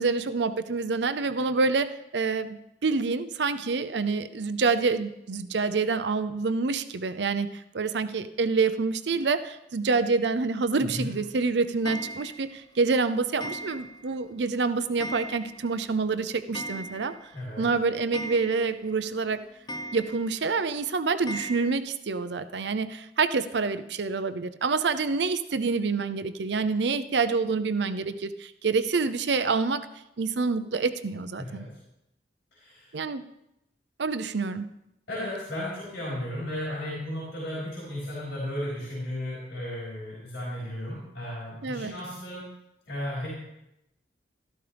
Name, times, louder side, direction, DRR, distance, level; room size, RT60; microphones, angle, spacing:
voice 1, 0.0-17.2 17.6-19.4 19.9-29.9 30.2-31.6 32.9-33.2 34.0-34.7 41.6-41.9, right 4 dB, 80° right, 11 dB, 0.6 m, -27 dB
voice 2, 10.8-11.1 17.3-17.7 31.4-31.8 32.5-32.9 35.1-42.5 42.9-43.3, left 1 dB, 85° left, -7 dB, 4.4 m, -34 dB
Clock, 11.8-12.6 13.4-14.1 14.4-14.5 15.0-15.8 16.0-16.1 16.4-17.3 17.6-17.7 18.1-18.9 19.7-20.4 21.3-21.8, right 1 dB, 25° left, 0.6 m, -38 dB
13.0 x 12.5 x 3.4 m, 0.85 s
head